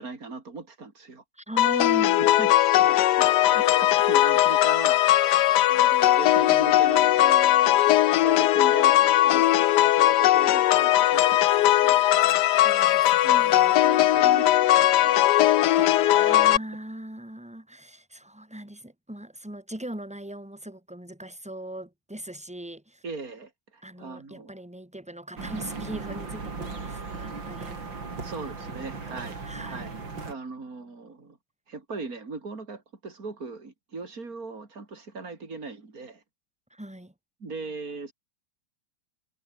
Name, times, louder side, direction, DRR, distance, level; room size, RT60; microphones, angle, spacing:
voice 1, 0.0-1.2 2.0-12.1 13.2-15.9 23.0-24.5 28.2-31.4 31.7-36.2 37.4-38.1, right 4 dB, 45° right, 4.4 m, -39 dB
voice 2, 1.3-2.3 2.9-3.2 12.6-13.8 15.7-23.0 23.8-27.8 28.6-29.9 36.7-37.1, right 1 dB, 5° right, 3.6 m, -39 dB
sound 1, 1.6-16.6, left 14 dB, 65° left, 1.2 m, -19 dB
sound 2, 25.4-30.3, right 4 dB, 65° right, 4.5 m, -37 dB
omnidirectional pair, 2.2 m